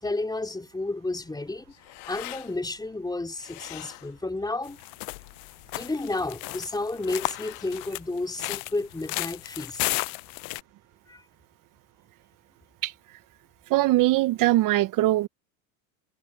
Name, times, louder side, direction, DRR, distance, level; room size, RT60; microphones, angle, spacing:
voice 1, 0.0-1.7 2.1-4.8 5.7-9.9 11.1-11.3, left 2 dB, 10° left, 3.8 m, -31 dB
sound 1, 1.1-9.0, left 24 dB, 70° left, 1.9 m, -47 dB
sound 2, 4.6-10.6, left 27 dB, 50° left, 0.7 m, -34 dB
voice 2, 12.8-13.2 13.7-15.3, right 17 dB, 45° right, 1.0 m, -22 dB
hypercardioid pair, 105°, 46 cm